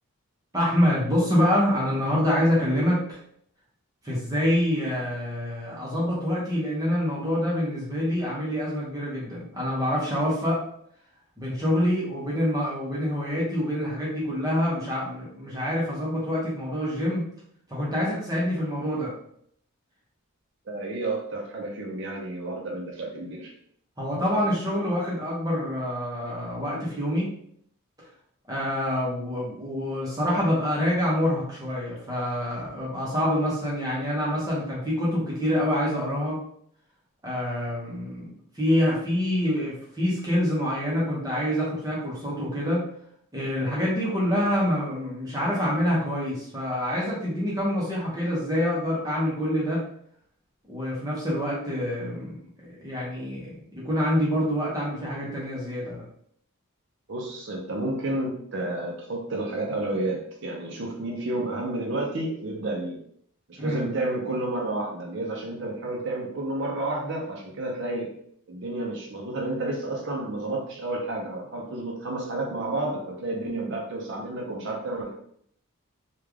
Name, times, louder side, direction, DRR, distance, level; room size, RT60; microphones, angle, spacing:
voice 1, 0.5-3.2 4.0-10.6 11.4-17.2 17.7-19.1 24.0-27.3 28.5-36.4 37.2-42.8 43.3-49.8 50.7-56.0 63.6-63.9, equal, 15° right, -6 dB, 0.8 m, -26 dB
voice 2, 20.7-23.5 57.1-63.0 63.5-68.1 68.5-75.1, right 2 dB, 55° right, 0 dB, 0.6 m, -31 dB
3.3 x 2.3 x 3.5 m, 0.66 s
head